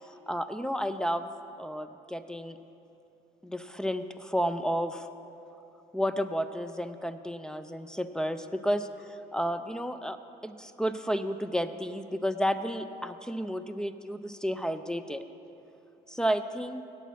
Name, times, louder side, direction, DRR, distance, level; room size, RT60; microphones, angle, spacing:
voice 1, 0.3-1.3 1.6-2.6 3.4-5.1 5.9-10.2 10.4-15.2 16.1-16.8, equal, 5° left, 10 dB, 0.4 m, -31 dB
8.3 x 8.2 x 7.1 m, 2.8 s
cardioid pair, 110°, 17 cm